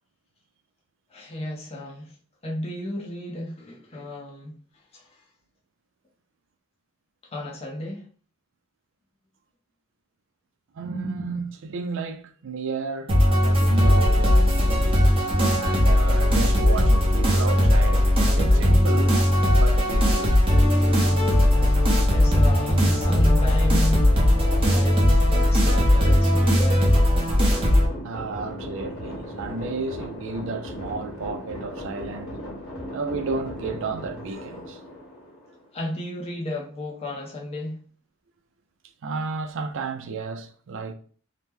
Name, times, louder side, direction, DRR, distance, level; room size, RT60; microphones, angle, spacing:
voice 1, 1.1-2.2 2.4-4.6 4.9-5.2 7.3-8.1 22.1-27.0 35.7-37.8, left 1 dB, 30° left, 0.6 m, -33 dB
voice 2, 10.7-15.0 15.4-18.1 18.3-19.2 19.6-20.4 28.0-32.4 32.9-34.8 39.0-40.9, right 4 dB, 65° right, 0.5 m, -32 dB
sound 1, 13.1-27.9, left 1 dB, 25° right, 0.8 m, -18 dB
sound 2, 27.6-35.9, equal, 70° left, 1.2 m, -37 dB
2.9 x 2.1 x 3.5 m
head